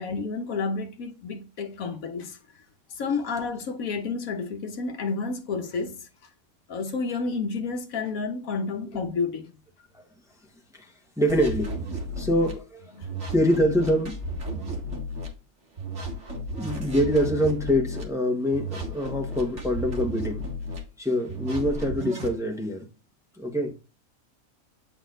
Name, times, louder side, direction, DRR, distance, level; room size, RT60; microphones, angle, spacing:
voice 1, 0.0-2.4 3.0-6.1 6.7-9.5 13.0-13.1, left 4 dB, 75° left, 1.3 m, -30 dB
voice 2, 11.2-11.8 12.2-12.9 13.3-14.1 16.5-20.5 21.0-22.9 23.4-23.7, equal, ahead, 1.1 m, -25 dB
sound 1, 11.3-12.5 13.0-15.3 15.8-18.0 18.5-20.8 21.3-22.3, equal, 55° right, 2.1 m, -33 dB
9.0 x 4.1 x 3.8 m
omnidirectional pair, 1.5 m